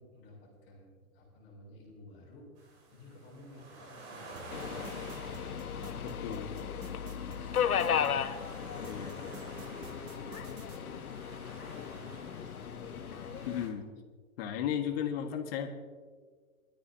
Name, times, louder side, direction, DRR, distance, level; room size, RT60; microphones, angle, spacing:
voice 1, 0.0-8.5 8.8-11.1 11.9-12.7, left 1 dB, 25° left, -10 dB, 5.5 m, -54 dB
sound 1, 2.6-13.7, right 2 dB, 45° right, 5.0 m, -51 dB
sound 2, 4.4-8.1 8.8-10.8, right 5 dB, 25° right, 1.1 m, -51 dB
Subway metro underground, 4.5-13.7, left 8 dB, 85° left, 1.2 m, -36 dB
voice 2, 6.0-6.5 8.9-9.2 13.4-13.9 14.4-15.7, left 9 dB, 45° left, 5 dB, 1.8 m, -35 dB
24.5 x 13.5 x 2.9 m, 1.5 s
hypercardioid pair, 135°, 43 cm